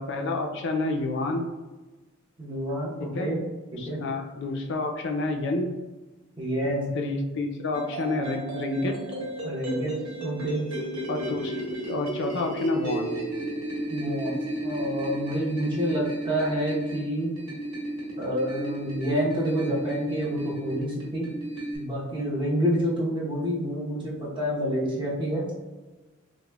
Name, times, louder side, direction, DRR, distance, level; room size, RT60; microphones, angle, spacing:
voice 1, 0.0-1.5 3.0-3.3 3.8-5.7 6.9-9.0 11.1-13.1, left 2 dB, 55° left, 4 dB, 0.4 m, -29 dB
voice 2, 2.4-3.4 3.7-4.0 6.4-6.9 9.4-9.9 10.2-10.7 13.9-17.3 18.2-21.3 21.7-25.4, equal, 25° right, -5 dB, 0.8 m, -28 dB
sound 1, 7.7-21.8, right 1 dB, 70° right, 1.4 m, -33 dB
4.8 x 2.1 x 2.3 m, 1.2 s
head